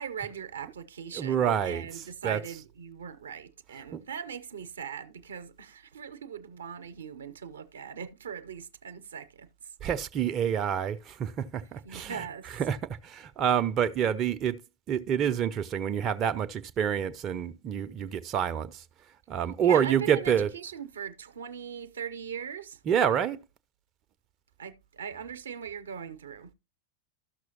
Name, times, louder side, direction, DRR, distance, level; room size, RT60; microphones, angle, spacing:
voice 1, 0.0-9.5 11.8-12.5 19.6-22.8 24.6-26.5, right 8 dB, 70° right, 0.6 m, -40 dB
voice 2, 1.1-2.6 3.9-4.0 9.8-14.6 14.9-18.8 19.3-20.5 22.8-23.4, right 8 dB, 30° right, 0.5 m, -28 dB
13.0 x 6.1 x 2.9 m
figure-of-eight pair, 90°, 0 cm